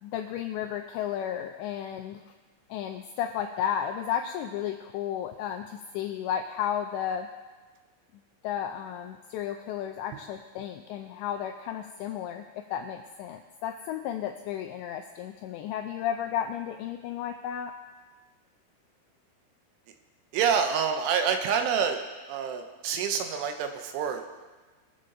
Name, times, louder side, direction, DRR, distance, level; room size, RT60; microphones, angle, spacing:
voice 1, 0.0-2.2 2.7-7.3 8.4-17.7, left 9 dB, 85° left, 4 dB, 2.5 m, -33 dB
voice 2, 20.3-22.0 22.3-24.3, right 7 dB, 80° right, 6 dB, 3.2 m, -27 dB
22.5 x 8.2 x 3.9 m, 1.3 s
omnidirectional pair, 5.7 m